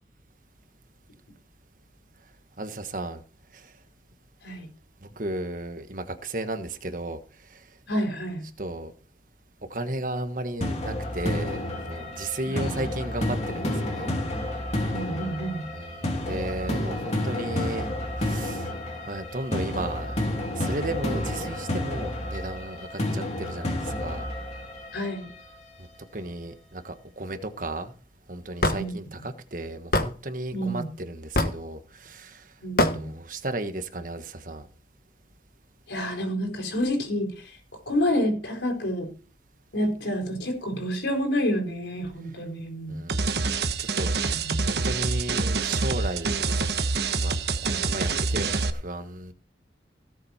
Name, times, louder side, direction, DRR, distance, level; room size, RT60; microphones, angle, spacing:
voice 1, 2.6-3.2 3.5-3.7 5.0-7.7 8.6-8.9 9.7-14.2 15.7-17.9 18.2-18.7 19.1-20.1 20.5-24.3 26.1-27.9 28.3-32.5 32.9-34.7 42.9-46.8 47.2-47.3 47.6-49.3, right 2 dB, 45° right, 1.4 m, -34 dB
voice 2, 7.9-8.5 12.4-12.8 14.9-15.7 23.1-23.2 24.9-25.3 28.7-28.9 30.5-30.9 32.6-33.1 35.9-37.6 37.9-39.1 39.7-43.0 44.3-44.6, equal, 85° left, 4.4 m, -29 dB
sound 1, 10.6-25.6, left 1 dB, 35° left, 2.8 m, -30 dB
Hammer / Wood, 28.6-28.8 29.9-30.1 31.3-31.6 32.8-33.0, left 1 dB, 55° left, 1.4 m, -22 dB
sound 2, 43.1-48.7, right 4 dB, 65° right, 1.2 m, -26 dB
17.5 x 7.5 x 4.3 m
head